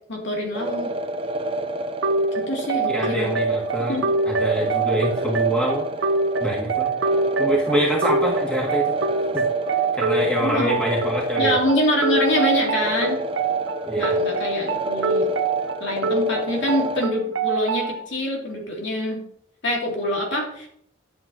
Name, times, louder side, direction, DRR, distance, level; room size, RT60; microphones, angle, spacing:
voice 1, 0.1-0.9 2.3-3.3 3.9-4.1 10.4-10.7 11.4-13.2 14.0-15.3 15.8-19.2 19.6-20.7, left 1 dB, 65° left, -1 dB, 2.6 m, -25 dB
sound 1, 0.5-17.1, right 1 dB, 25° right, 0.6 m, -30 dB
sound 2, 2.0-18.0, right 4 dB, 70° right, 0.9 m, -25 dB
voice 2, 2.9-5.9 6.4-7.0 7.4-8.9 9.3-9.4 9.9-11.6 13.8-14.1, right 1 dB, 5° left, -5 dB, 2.2 m, -25 dB
11.5 x 8.2 x 2.9 m, 0.67 s
head